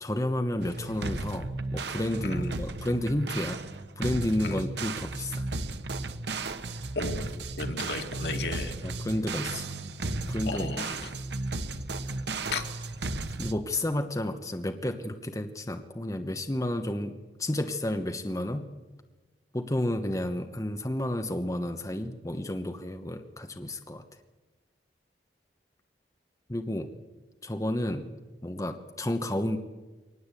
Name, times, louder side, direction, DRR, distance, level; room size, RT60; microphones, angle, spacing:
voice 1, 0.0-3.6 4.0-5.5 8.8-9.7 10.3-11.1 13.4-18.6 19.5-24.0 26.5-26.9 27.4-28.1 28.4-29.6, left 1 dB, 20° left, 7 dB, 1.0 m, -31 dB
sound 1, 0.6-13.5, right 2 dB, 80° right, 1.2 m, -34 dB
voice 2, 2.2-2.6 4.4-4.7 7.0-8.7 10.5-11.1 12.5-12.6, left 3 dB, 75° left, 5 dB, 2.4 m, -35 dB
23.0 x 19.0 x 8.3 m, 1.3 s
head